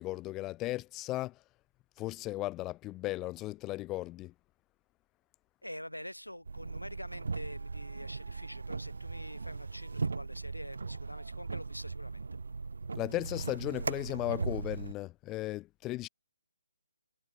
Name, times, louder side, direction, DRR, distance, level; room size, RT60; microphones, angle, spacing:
voice 1, 0.0-1.4 2.0-4.3 13.0-16.1, left 17 dB, 15° left, 0.6 m, -36 dB
voice 2, 5.6-12.2, left 1 dB, 85° left, 3.0 m, -46 dB
sound 1, 6.5-14.9, right 4 dB, 60° right, 0.5 m, -38 dB
figure-of-eight pair, 140°, 0 cm